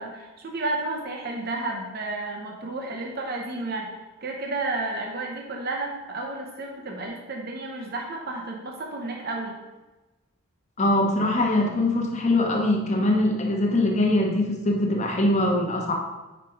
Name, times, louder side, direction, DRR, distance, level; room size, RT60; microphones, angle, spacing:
voice 1, 0.0-3.9 4.2-9.6, right 2 dB, 45° right, 1 dB, 0.7 m, -32 dB
voice 2, 10.8-15.9, left 1 dB, 30° left, 0 dB, 0.9 m, -22 dB
5.1 x 4.9 x 4.6 m, 1.1 s
head